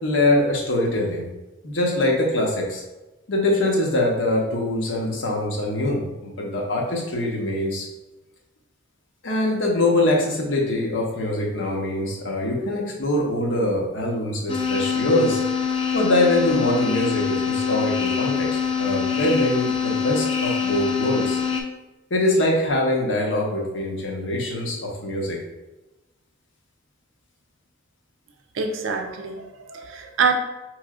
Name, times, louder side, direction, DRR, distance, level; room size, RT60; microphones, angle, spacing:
voice 1, 0.0-1.3 1.6-2.8 3.3-7.9 9.2-15.4 15.9-21.4 22.1-25.4, left 1 dB, 70° left, -1 dB, 0.8 m, -23 dB
sound 1, 14.5-21.6, left 6 dB, 25° left, 0.4 m, -24 dB
voice 2, 28.5-30.3, right 5 dB, 75° right, 3 dB, 0.5 m, -25 dB
4.8 x 3.1 x 2.4 m, 1.1 s
head